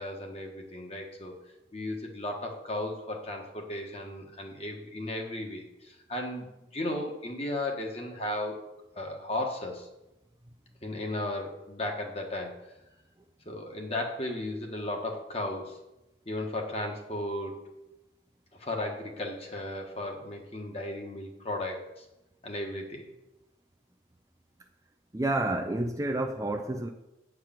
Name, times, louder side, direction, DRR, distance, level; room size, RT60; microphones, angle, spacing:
voice 1, 0.0-1.3 1.7-8.6 8.9-9.9 10.8-12.5 13.4-15.8 16.3-17.6 18.6-22.0 22.4-23.0, left 1 dB, 35° left, 1.4 m, -35 dB
voice 2, 25.1-26.9, right 2 dB, 20° right, 0.5 m, -29 dB
9.0 x 4.8 x 7.4 m
head